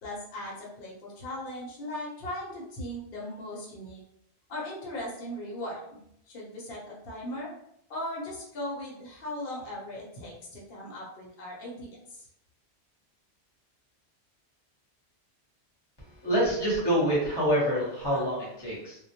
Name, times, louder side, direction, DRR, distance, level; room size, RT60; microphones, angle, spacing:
voice 1, 0.0-4.0 4.5-6.0 6.3-7.5 7.9-12.3 18.1-18.3, left 1 dB, 60° left, -4 dB, 0.9 m, -38 dB
voice 2, 16.2-19.0, equal, 25° left, -7 dB, 0.9 m, -26 dB
2.2 x 2.1 x 2.7 m, 0.73 s
omnidirectional pair, 1.1 m